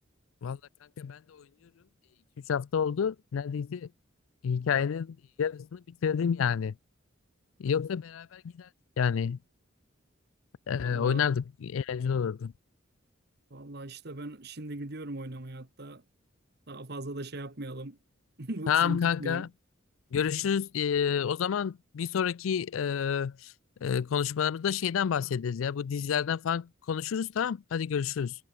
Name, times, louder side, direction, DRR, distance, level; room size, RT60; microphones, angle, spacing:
voice 1, 1.0-1.5 2.4-3.9 4.4-6.7 7.6-8.7 9.0-9.4 10.7-12.5 18.7-19.5 20.1-23.5 23.8-28.4, left 7 dB, 85° left, 0.4 m, -29 dB
voice 2, 10.7-11.3 13.5-16.0 16.7-18.0 18.4-19.5, right 2 dB, 55° right, 1.7 m, -39 dB
head